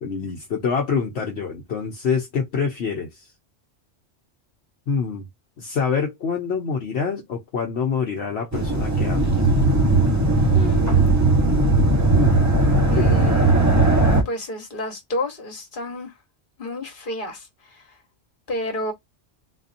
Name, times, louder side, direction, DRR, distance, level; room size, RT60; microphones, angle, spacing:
voice 1, 0.0-3.2 4.9-5.2 5.6-9.4 12.1-12.3 12.6-13.5, left 5 dB, 65° left, 1.1 m, -26 dB
sound 1, 8.5-14.2, right 2 dB, 15° right, 1.0 m, -18 dB
voice 2, 10.5-10.9 12.9-13.6 14.2-16.1 16.6-17.9 18.5-18.9, left 1 dB, 45° left, 1.5 m, -30 dB
4.1 x 2.7 x 2.6 m
omnidirectional pair, 1.2 m